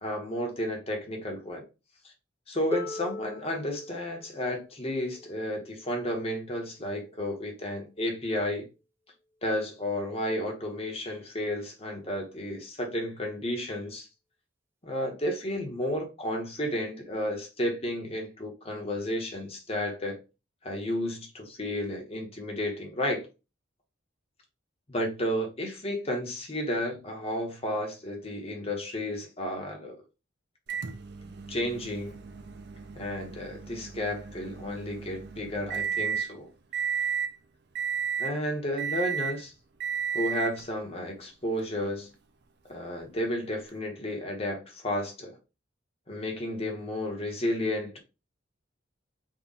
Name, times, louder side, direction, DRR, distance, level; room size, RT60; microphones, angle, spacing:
voice 1, 0.0-1.6 2.5-8.7 9.4-14.1 14.8-20.2 20.6-23.3 24.9-30.0 31.5-32.2 33.0-36.5 38.2-39.5 40.1-42.1 42.7-45.4 46.1-48.0, left 1 dB, 30° left, 1.0 m, -32 dB
Harp, 2.7-8.5 9.6-9.7, equal, 10° right, 0.6 m, -42 dB
Microwave oven, 30.7-36.3 36.7-37.3 37.7-38.4 38.8-39.4 39.8-40.6 41.6-41.7 43.7-43.8, right 7 dB, 60° right, 0.5 m, -33 dB
3.6 x 2.4 x 3.9 m
head